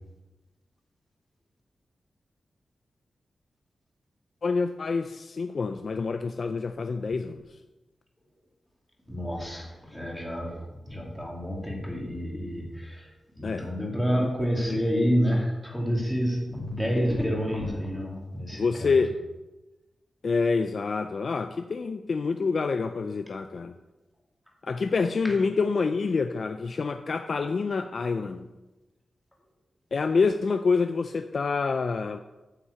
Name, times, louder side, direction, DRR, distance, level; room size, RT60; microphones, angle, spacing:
voice 1, 4.4-7.4 13.4-13.7 14.1-14.3 14.6-14.8 18.5-19.2 20.2-23.7 24.6-28.5 29.9-32.2, left 4 dB, 50° left, 8 dB, 0.4 m, -27 dB
voice 2, 9.1-19.0, equal, ahead, -2 dB, 2.3 m, -29 dB
9.6 x 6.0 x 8.1 m, 1.1 s
wide cardioid pair, 180°, 0 cm